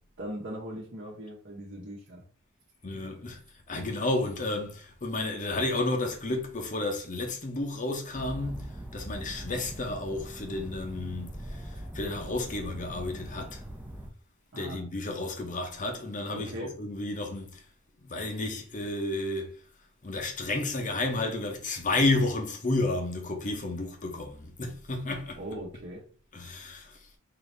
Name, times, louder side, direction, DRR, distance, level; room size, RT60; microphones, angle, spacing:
voice 1, 0.2-2.2 2.9-3.1 14.5-14.8 16.3-16.7 25.4-26.0, equal, 60° right, 1.0 m, -39 dB
voice 2, 2.8-3.4 3.7-13.6 14.6-17.6 18.0-19.5 20.0-25.4 26.3-27.0, left 2 dB, 40° left, 0.8 m, -31 dB
sound 1, 8.1-14.1, right 1 dB, 10° right, 0.5 m, -41 dB
3.9 x 2.7 x 3.3 m
head